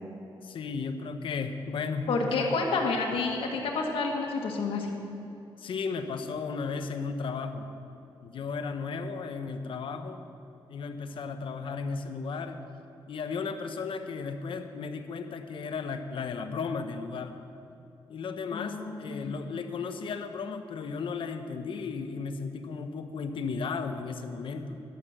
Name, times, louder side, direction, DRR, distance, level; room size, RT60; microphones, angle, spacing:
voice 1, 0.4-2.5 5.6-7.7 8.2-10.2 10.7-12.6 13.1-17.5 18.1-24.8, left 5 dB, 70° left, 7 dB, 0.9 m, -35 dB
voice 2, 2.1-4.9 18.5-19.4, left 3 dB, 85° left, 0 dB, 1.8 m, -29 dB
12.0 x 9.6 x 6.6 m, 2.9 s
cardioid pair, 120°, 9 cm